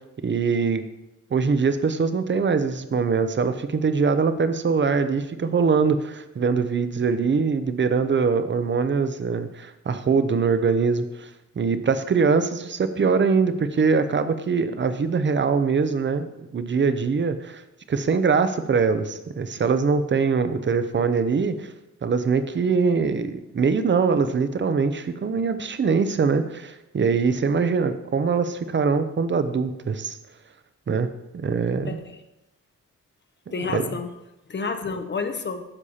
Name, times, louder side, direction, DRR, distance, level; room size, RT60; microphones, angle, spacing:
voice 1, 0.2-0.8 1.3-11.3 11.6-17.6 17.9-21.7 22.0-30.2 30.9-32.0 33.6-33.8, right 5 dB, 35° right, 10 dB, 0.6 m, -23 dB
voice 2, 31.9-32.2 33.5-34.1 34.5-35.6, left 4 dB, 35° left, 8 dB, 0.7 m, -29 dB
9.7 x 7.1 x 4.2 m, 0.95 s
wide cardioid pair, 175°, 32 cm